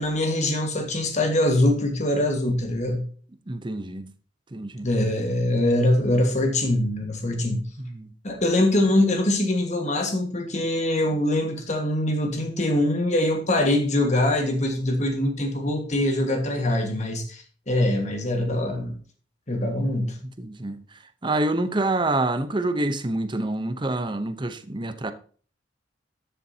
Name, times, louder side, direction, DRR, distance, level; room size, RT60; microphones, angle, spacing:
voice 1, 0.0-3.1 4.8-7.7 8.2-19.0 19.5-20.2, left 1 dB, 40° left, 1.7 m, -23 dB
voice 2, 3.5-4.1 4.5-4.9 7.8-8.1 11.1-11.2 20.2-25.1, right 2 dB, 25° right, 0.8 m, -27 dB
13.0 x 6.9 x 2.8 m
head